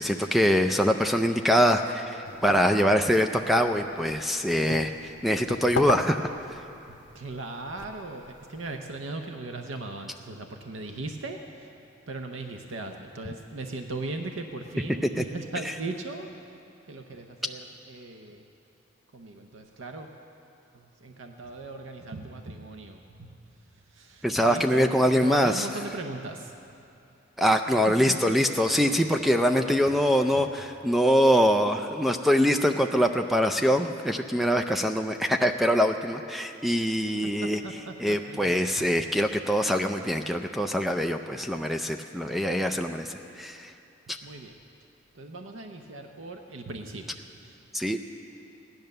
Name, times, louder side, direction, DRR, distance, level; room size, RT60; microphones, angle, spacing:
voice 1, 0.0-4.9 5.2-6.6 15.0-15.2 15.6-15.7 24.2-25.7 27.4-37.6 38.0-43.7 47.7-48.0, equal, ahead, 5 dB, 0.4 m, -24 dB
sound 1, 2.2-8.8, left 4 dB, 75° left, 0.8 m, -38 dB
voice 2, 6.9-11.7 12.1-16.3 16.9-18.4 19.1-20.1 20.7-23.3 23.9-26.5 28.1-28.2 28.4-29.0 29.5-29.8 37.2-38.5 44.2-44.5 45.1-47.6, right 2 dB, 85° right, 4 dB, 0.8 m, -38 dB
15.5 x 10.5 x 6.6 m, 2.7 s
head